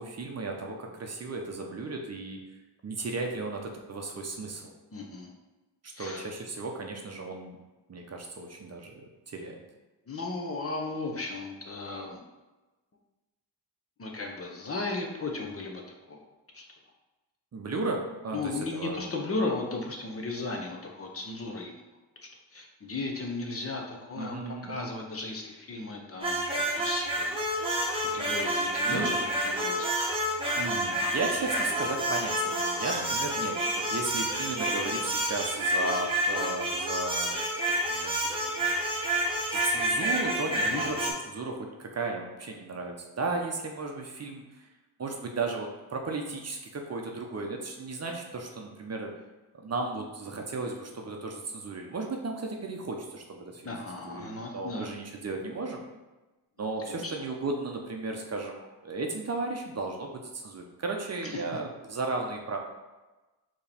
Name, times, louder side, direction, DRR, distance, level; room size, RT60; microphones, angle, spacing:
voice 1, 0.0-2.4 2.8-4.7 6.0-7.6 7.9-8.9 9.3-9.6 17.5-19.1 24.2-24.9 28.5-29.1 30.6-37.4 37.9-38.7 39.5-44.7 45.0-49.1 49.6-55.8 56.6-62.6, right 3 dB, 35° right, 2 dB, 0.7 m, -35 dB
voice 2, 4.9-5.3 6.0-6.3 10.1-12.2 14.0-15.8 16.1-16.2 16.5-16.6 18.3-21.8 22.5-24.4 24.6-27.3 28.1-29.2 29.4-30.1 40.6-40.8 53.6-54.9 56.9-57.1 61.2-61.4, left 3 dB, 30° left, 1 dB, 0.8 m, -35 dB
sound 1, 26.2-41.1, right 1 dB, 10° right, 1.1 m, -29 dB
4.5 x 3.1 x 3.5 m, 1.1 s
cardioid pair, 85°, 44 cm